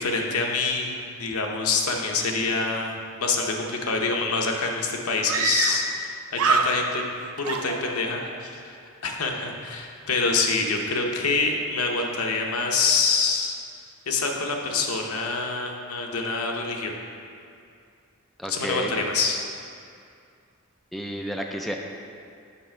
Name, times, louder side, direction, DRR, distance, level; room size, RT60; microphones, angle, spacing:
voice 1, 0.0-7.0 7.4-8.8 9.0-13.5 14.1-16.9 18.5-19.4, left 4 dB, 80° left, 1 dB, 0.8 m, -26 dB
Screaming, 5.3-6.1 6.3-7.1 7.4-8.4, right 5 dB, 70° right, 0.5 m, -25 dB
voice 2, 18.4-18.9 20.9-21.8, equal, ahead, 1 dB, 0.3 m, -31 dB
7.2 x 5.8 x 4.4 m, 2.4 s
head